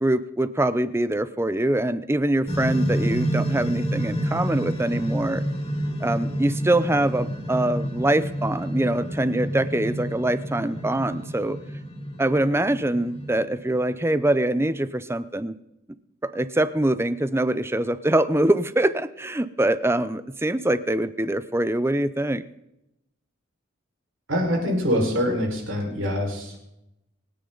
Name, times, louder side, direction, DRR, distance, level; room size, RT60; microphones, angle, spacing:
voice 1, 0.0-5.4 6.0-11.6 12.2-15.5 16.2-22.4, right 1 dB, 15° right, 14 dB, 0.7 m, -24 dB
sound 1, 2.5-13.9, right 1 dB, 30° left, 3.2 m, -29 dB
voice 2, 24.3-26.7, equal, 80° right, 0 dB, 5.3 m, -25 dB
26.0 x 9.9 x 4.0 m, 0.86 s
head